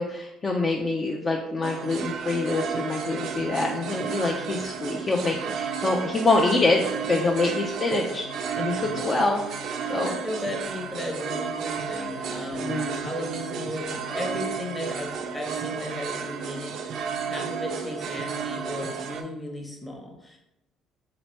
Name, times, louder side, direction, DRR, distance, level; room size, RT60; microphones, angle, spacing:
voice 1, 0.0-8.3 8.6-9.4 9.9-10.1 12.5-13.1, left 3 dB, 30° left, -1 dB, 0.4 m, -25 dB
sound 1, 1.6-19.2, right 6 dB, 65° right, 0.4 m, -33 dB
voice 2, 8.7-9.0 10.0-20.4, left 1 dB, 15° left, 0 dB, 0.9 m, -35 dB
3.3 x 3.0 x 3.1 m, 0.88 s
cardioid pair, 95°, 0 cm